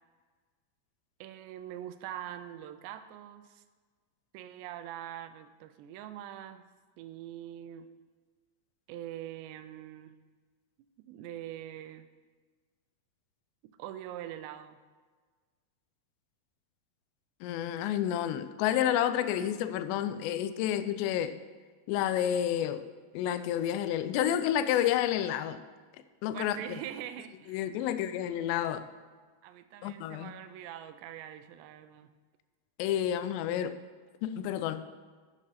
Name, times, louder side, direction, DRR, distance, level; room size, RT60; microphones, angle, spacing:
voice 1, 1.2-3.6 4.3-6.7 7.0-7.9 8.9-10.1 11.0-12.1 13.6-14.8 26.3-28.2 29.4-32.1, right 11 dB, 85° right, 11 dB, 2.8 m, -43 dB
voice 2, 17.4-21.4 21.9-25.6 26.2-26.6 27.5-28.9 29.8-30.3 32.8-33.8 34.2-34.8, left 10 dB, 90° left, 12 dB, 2.8 m, -30 dB
11.0 x 8.7 x 4.2 m, 1.5 s
omnidirectional pair, 4.9 m